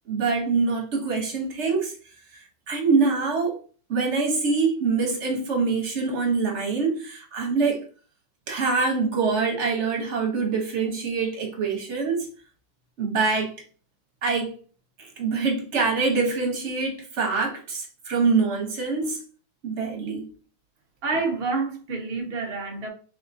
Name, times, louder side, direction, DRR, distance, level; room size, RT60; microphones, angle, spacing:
voice 1, 0.1-1.9 2.3-3.6 3.9-7.9 8.5-12.3 13.0-13.5 14.2-14.5 15.0-19.2 19.6-20.3, right 4 dB, 50° right, 0.9 m, -25 dB
voice 2, 21.0-22.9, right 3 dB, 75° right, 0.5 m, -28 dB
3.9 x 3.6 x 2.6 m
omnidirectional pair, 2.3 m